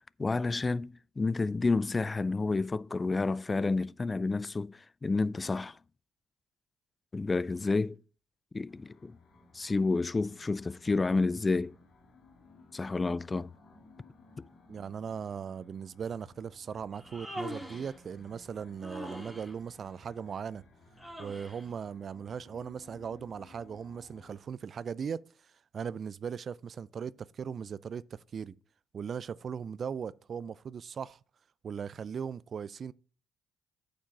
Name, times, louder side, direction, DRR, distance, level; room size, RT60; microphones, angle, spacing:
voice 1, 0.2-5.8 7.1-8.0 8.5-9.2 9.5-11.7 12.7-13.5 14.4-14.5, left 3 dB, 30° left, 0.3 m, -30 dB
sound 1, 8.7-24.4, left 3 dB, 60° left, 2.1 m, -59 dB
voice 2, 14.7-20.6 21.2-28.5 28.9-31.2 31.6-32.9, right 7 dB, 50° right, 0.4 m, -39 dB
Human voice, 16.9-18.0 18.8-19.5 21.0-21.7, equal, ahead, 2.7 m, -42 dB
8.8 x 5.2 x 5.8 m
hypercardioid pair, 55°, 0 cm